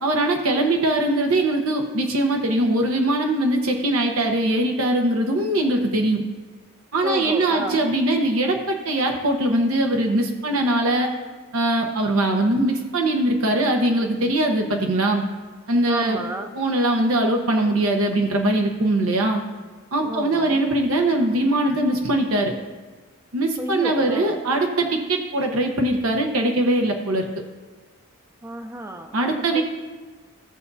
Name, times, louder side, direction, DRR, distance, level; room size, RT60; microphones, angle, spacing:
voice 1, 0.0-6.2 6.9-11.1 11.5-15.2 15.7-16.2 16.6-19.4 19.9-22.5 23.3-27.3 29.1-29.6, right 1 dB, 85° right, 2 dB, 1.0 m, -21 dB
voice 2, 7.0-7.8 15.9-16.5 20.0-20.6 23.6-24.4 28.4-29.6, right 1 dB, 15° right, 5 dB, 0.5 m, -32 dB
16.5 x 6.9 x 2.7 m, 1.4 s
head